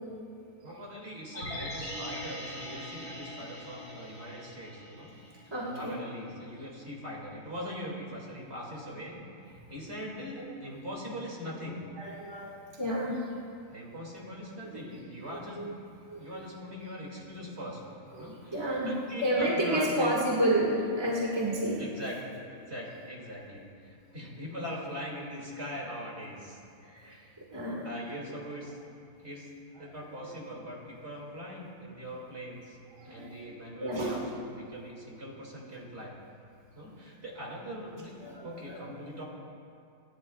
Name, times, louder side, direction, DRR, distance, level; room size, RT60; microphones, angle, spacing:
voice 1, 0.6-5.1 5.6-9.2 9.7-11.9 13.7-15.7 16.1-17.8 18.2-20.2 21.8-26.6 27.0-27.3 27.8-28.7 29.2-29.5 29.8-32.8 33.0-34.2 34.5-36.1 36.7-38.1 38.4-39.2, equal, 40° right, -3 dB, 2.8 m, -41 dB
sound 1, 1.3-5.5 5.9-6.0, left 1 dB, 40° left, 3.7 m, -41 dB
voice 2, 5.5-5.9 12.0-13.3 14.6-14.8 15.3-15.7 16.1-16.4 18.1-18.9 19.2-21.8 24.3-24.4 26.8-28.4 29.8-30.3 32.9-33.3 33.8-34.2 38.2-38.8, right 1 dB, 15° right, -4 dB, 1.8 m, -31 dB
27.0 x 11.5 x 2.4 m, 2.4 s
omnidirectional pair, 1.8 m